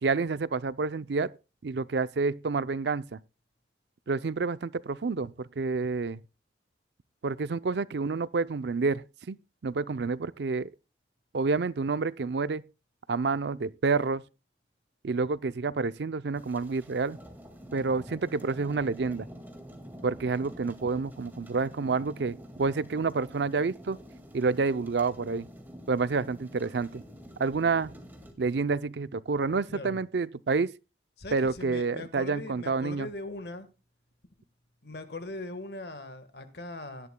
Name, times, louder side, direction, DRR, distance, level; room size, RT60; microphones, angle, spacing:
voice 1, 0.0-1.3 1.6-3.2 4.1-6.2 7.2-9.4 9.6-10.7 11.3-12.6 13.1-14.2 15.0-17.2 17.7-19.3 20.0-24.0 24.3-25.5 25.9-27.0 27.4-27.9 28.4-30.7 31.3-33.1, right 4 dB, 70° right, 0.5 m, -29 dB
sound 1, 16.3-28.3, equal, 10° right, 2.0 m, -47 dB
voice 2, 31.2-33.7 34.8-37.1, left 2 dB, 65° left, 1.5 m, -40 dB
17.5 x 11.5 x 2.2 m
head